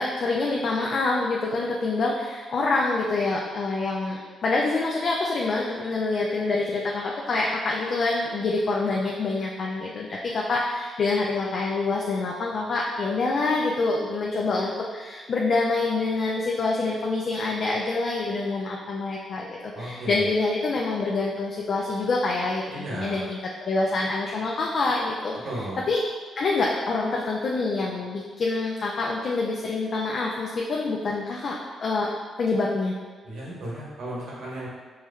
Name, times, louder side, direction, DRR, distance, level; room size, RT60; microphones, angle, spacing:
voice 1, 0.0-22.6 22.9-26.0 26.4-32.1 32.4-33.0, left 3 dB, 60° left, -2 dB, 0.4 m, -26 dB
voice 2, 19.7-20.3 22.7-23.2 25.4-25.8 33.2-34.7, right 1 dB, 70° right, -6 dB, 1.2 m, -34 dB
4.5 x 3.1 x 2.3 m, 1.4 s
hypercardioid pair, 45°, 0 cm